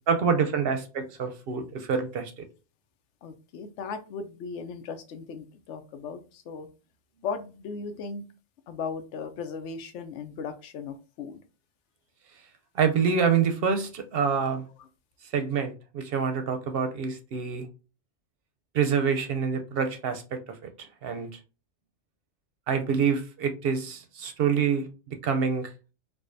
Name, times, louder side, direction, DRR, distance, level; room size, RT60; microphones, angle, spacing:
voice 1, 0.1-2.4 12.7-14.7 15.3-17.7 18.7-21.3 22.7-25.7, right 6 dB, 65° right, 0.7 m, -27 dB
voice 2, 3.2-6.2 6.5-6.7 7.2-8.2 8.7-11.4, left 5 dB, 80° left, 0.9 m, -37 dB
4.8 x 2.2 x 2.5 m
omnidirectional pair, 1.2 m